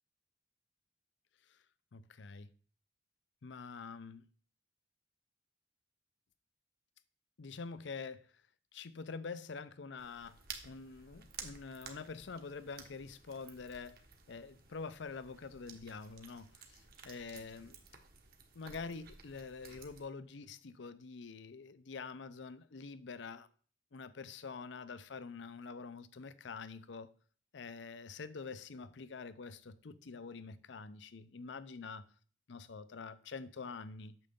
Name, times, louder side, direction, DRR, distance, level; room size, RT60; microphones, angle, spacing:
voice 1, 1.9-2.5 3.4-4.3 7.4-8.3 8.7-14.0 14.3-17.8 18.5-23.5 23.9-27.1 27.5-32.0 32.5-34.2, left 4 dB, 70° left, 0.6 m, -46 dB
sound 1, 10.0-20.0, right 6 dB, 55° right, 1.3 m, -54 dB
8.9 x 6.6 x 3.6 m
head